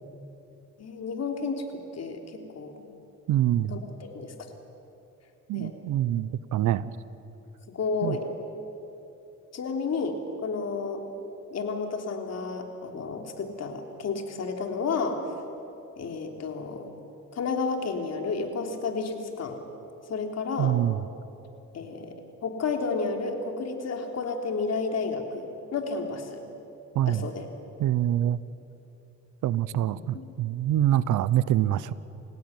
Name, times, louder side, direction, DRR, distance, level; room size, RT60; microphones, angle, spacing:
voice 1, 0.8-1.7 1.9-2.8 3.7-4.3 5.5-5.8 7.7-8.3 9.5-11.0 11.5-15.2 16.0-16.9 17.3-19.6 20.1-20.7 21.7-22.1 22.4-26.4 27.1-27.4 29.7-30.3, left 4 dB, 60° left, 4 dB, 3.5 m, -31 dB
voice 2, 3.3-3.8 5.5-6.9 8.0-8.2 20.6-21.0 26.9-27.3 27.8-28.4 29.4-31.9, right 12 dB, 80° right, 17 dB, 0.9 m, -25 dB
29.0 x 16.5 x 9.5 m, 2.9 s
cardioid pair, 90°, 30 cm